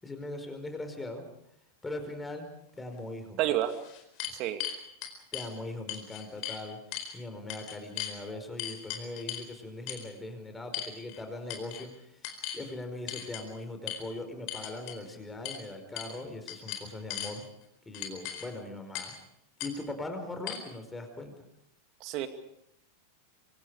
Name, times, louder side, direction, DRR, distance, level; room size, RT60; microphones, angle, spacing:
voice 1, 0.0-1.3 1.8-2.5 2.8-3.4 5.3-6.8 7.1-11.9 12.5-17.4 17.8-19.1 19.6-21.3, left 2 dB, 10° left, 6 dB, 5.0 m, -40 dB
sound 1, 3.0-3.1 3.6-5.5 5.9-6.6 6.9-7.1 7.5-8.2 8.6-9.5 9.9-10.1 10.7-11.2 11.5-11.8 12.2-12.6 13.1-13.4 13.9-14.0 14.5-15.0 15.4-15.6 16.0-16.2 16.5-17.3 17.9-18.5 18.9-19.2 19.6-19.7 20.5-20.6, left 11 dB, 45° left, 4.5 m, -38 dB
voice 2, 3.4-3.7 4.4-4.6 22.0-22.3, right 13 dB, 40° right, 8 dB, 2.4 m, -29 dB
27.0 x 25.0 x 5.0 m, 0.77 s
figure-of-eight pair, 90°, 0 cm